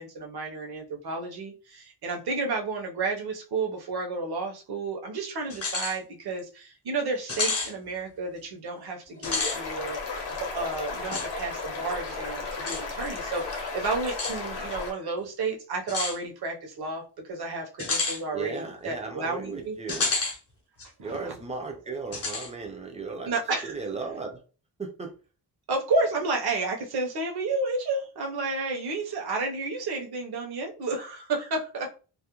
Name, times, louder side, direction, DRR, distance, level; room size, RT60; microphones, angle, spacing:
voice 1, 0.0-10.0 10.3-19.8 21.0-21.3 23.2-23.8 25.7-32.0, right 3 dB, 60° right, 2 dB, 0.7 m, -31 dB
sound 1, 5.5-6.0 6.4-6.5 7.3-7.7 9.1-9.6 11.1-11.3 12.7-12.8 14.1-14.4 15.9-16.2 17.8-18.2 19.9-20.4 20.8-20.9 22.1-22.5, left 3 dB, 35° left, 0.7 m, -29 dB
sound 2, 9.2-14.9, left 4 dB, 65° left, 0.7 m, -34 dB
voice 2, 18.3-20.1 21.0-23.3 23.6-24.4 24.8-25.1, right 4 dB, 15° right, 3 dB, 0.4 m, -36 dB
2.4 x 2.0 x 2.9 m, 0.35 s
wide cardioid pair, 160°, 45 cm